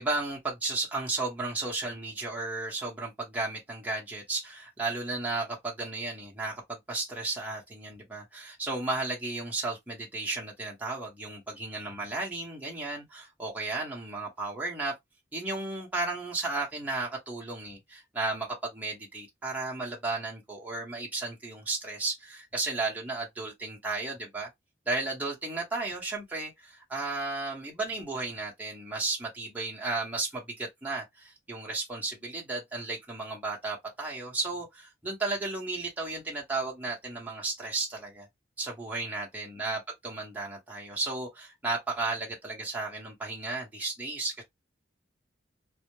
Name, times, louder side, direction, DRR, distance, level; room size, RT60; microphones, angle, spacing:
voice 1, 0.0-14.9 15.3-24.5 24.9-38.3 38.6-44.4, right 3 dB, 10° right, 0.7 m, -34 dB
2.2 x 2.0 x 2.9 m
head